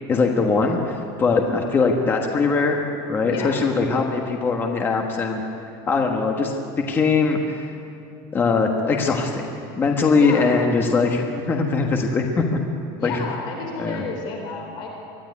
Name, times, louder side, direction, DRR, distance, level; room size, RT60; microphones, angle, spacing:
voice 1, 0.1-2.8 3.1-5.4 5.9-6.5 6.9-7.6 8.3-9.5 9.7-12.6 13.0-13.2 13.8-14.0, left 4 dB, 15° left, 2 dB, 1.4 m, -21 dB
voice 2, 3.2-3.6 10.1-10.5 13.0-14.9, left 4 dB, 40° left, 1 dB, 3.7 m, -32 dB
23.5 x 15.0 x 9.7 m, 2.6 s
cardioid pair, 180°, 12 cm